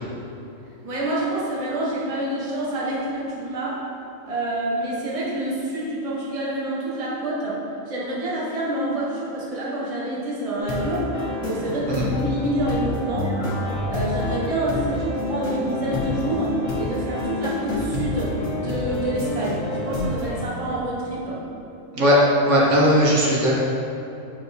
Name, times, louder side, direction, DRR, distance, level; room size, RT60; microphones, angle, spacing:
voice 1, 0.8-3.8 4.3-11.1 11.4-13.3 13.9-21.4, right 1 dB, 30° right, -6 dB, 1.1 m, -27 dB
sound 1, 10.6-20.4, left 2 dB, 70° left, 1.4 m, -28 dB
voice 2, 22.4-23.6, equal, 65° right, -5 dB, 1.2 m, -18 dB
8.3 x 4.7 x 2.6 m, 3.0 s
omnidirectional pair, 1.4 m